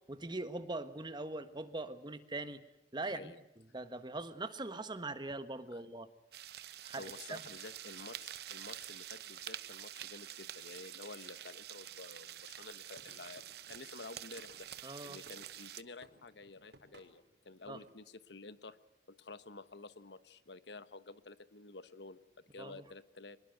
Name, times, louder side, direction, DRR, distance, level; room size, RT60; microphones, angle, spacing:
voice 1, 0.1-2.6 2.9-3.3 3.7-6.1 6.9-7.4 14.8-15.2 17.7-17.8 22.6-22.8, right 2 dB, 25° right, 11 dB, 1.4 m, -41 dB
voice 2, 3.0-3.4 5.7-5.8 7.0-18.8 19.1-23.4, left 3 dB, 75° left, 14 dB, 1.2 m, -51 dB
sound 1, 6.3-15.8, right 12 dB, 65° right, 0.8 m, -48 dB
sound 2, 12.9-15.6 16.0-17.9, right 2 dB, 80° right, 5.6 m, -62 dB
24.5 x 21.0 x 8.0 m, 0.91 s
head